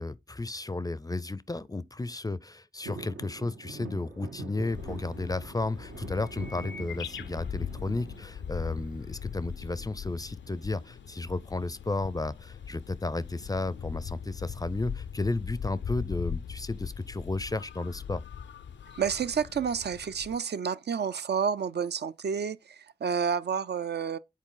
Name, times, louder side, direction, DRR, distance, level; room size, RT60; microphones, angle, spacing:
voice 1, 0.0-18.2, left 2 dB, 20° left, 0.4 m, -33 dB
sound 1, 2.8-9.0 9.4-10.1 11.3-11.8 12.0-12.1 12.4-12.7 13.5-14.4 14.9-15.0, right 3 dB, 80° right, 0.9 m, -44 dB
sound 2, 4.7-20.4, left 7 dB, 85° left, 0.4 m, -40 dB
voice 2, 19.0-24.2, right 7 dB, 65° right, 0.4 m, -30 dB
7.3 x 4.1 x 3.8 m
cardioid pair, 45°, 19 cm